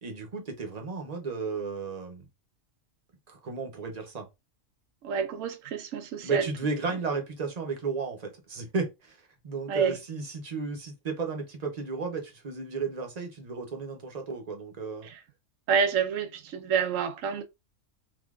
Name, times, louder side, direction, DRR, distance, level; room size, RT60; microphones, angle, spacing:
voice 1, 0.0-2.3 3.3-4.3 6.2-15.1, right 4 dB, 35° right, 0.8 m, -34 dB
voice 2, 5.0-6.5 9.7-10.0 15.0-15.2 15.7-17.4, right 6 dB, 75° right, 1.0 m, -28 dB
3.6 x 2.9 x 2.3 m
omnidirectional pair, 1.4 m